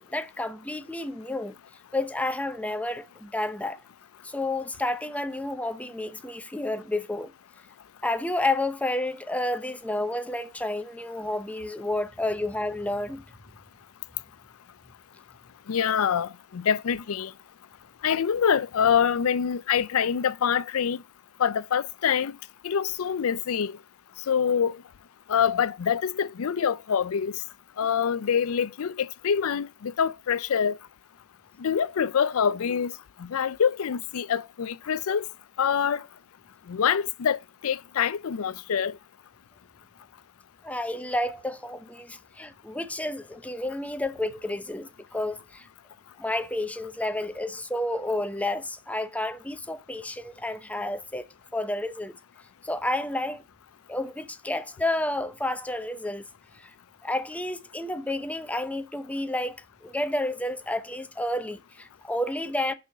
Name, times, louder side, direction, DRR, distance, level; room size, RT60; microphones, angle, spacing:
voice 1, 0.0-1.5 1.9-3.8 4.2-7.3 8.0-13.2 40.6-45.7 46.2-51.2 51.5-52.1 52.6-53.4 53.9-56.2 56.6-56.7 57.0-62.7, left 1 dB, 5° left, 0.7 m, -30 dB
voice 2, 15.7-17.3 18.0-21.0 21.4-22.3 22.6-23.7 24.3-24.8 25.3-27.4 27.8-30.8 31.6-32.9 33.2-35.3 35.6-36.0 36.7-37.4 37.6-38.9, left 7 dB, 75° left, 0.4 m, -25 dB
6.1 x 5.6 x 6.4 m
head